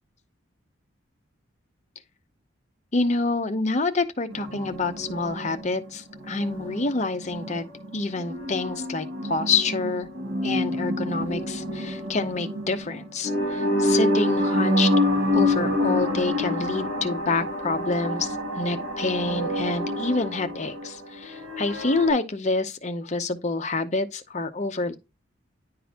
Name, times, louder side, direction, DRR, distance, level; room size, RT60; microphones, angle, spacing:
voice 1, 2.9-7.6 7.9-10.1 10.4-14.9 15.3-25.0, left 3 dB, 35° left, 0.7 m, -27 dB
sound 1, 4.3-22.1, left 1 dB, 85° right, 2.3 m, -27 dB
10.5 x 3.8 x 2.8 m
head